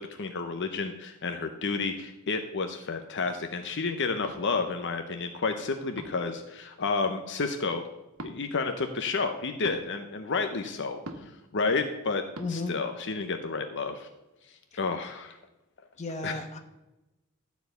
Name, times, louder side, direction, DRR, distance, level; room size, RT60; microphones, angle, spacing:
voice 1, 0.0-7.8 8.2-12.2 12.5-14.1 14.5-15.4 16.2-16.4, left 4 dB, 60° left, 6 dB, 0.8 m, -31 dB
sound 1, 4.2-4.4 6.0-6.3 8.1-8.4 9.6-9.8 11.0-11.4 12.3-12.5, right 1 dB, 75° right, 1.4 m, -40 dB
voice 2, 12.4-12.7 16.0-16.6, left 2 dB, 35° left, 5 dB, 1.1 m, -33 dB
12.5 x 4.7 x 7.9 m, 0.99 s
head